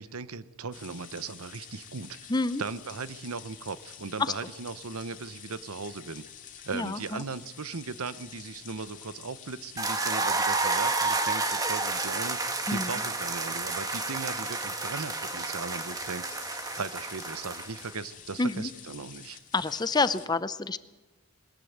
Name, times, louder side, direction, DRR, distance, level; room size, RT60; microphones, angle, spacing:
voice 1, 0.0-2.2 2.6-6.2 6.7-19.4, right 4 dB, 80° right, 14 dB, 0.9 m, -38 dB
sound 1, 0.7-20.3, left 8 dB, 35° left, 2.3 m, -48 dB
voice 2, 2.3-2.6 4.2-4.3 6.7-7.2 12.7-12.9 18.4-18.7 19.5-20.8, left 3 dB, 20° left, 14 dB, 0.6 m, -28 dB
sound 2, 9.8-17.9, right 3 dB, 15° right, 1.6 m, -30 dB
20.5 x 19.0 x 8.1 m, 1.2 s
head